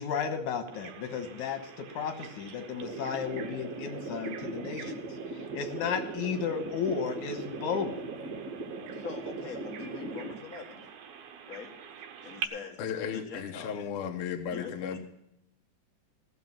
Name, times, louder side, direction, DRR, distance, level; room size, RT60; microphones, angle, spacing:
voice 1, 0.0-5.0 5.5-8.0, left 6 dB, 85° left, 6 dB, 2.7 m, -33 dB
Bird vocalization bird call bird song, 0.7-12.5, right 7 dB, 85° right, 2.4 m, -46 dB
sound 1, 2.8-10.3, right 3 dB, 55° right, 3.4 m, -39 dB
voice 2, 8.9-10.9 11.5-11.8 12.2-12.8 13.1-13.8 14.5-15.0, left 6 dB, 35° left, 1 dB, 1.7 m, -43 dB
voice 3, 12.8-15.0, left 7 dB, 65° left, 5 dB, 1.4 m, -35 dB
16.5 x 6.6 x 7.3 m, 0.80 s
omnidirectional pair, 3.4 m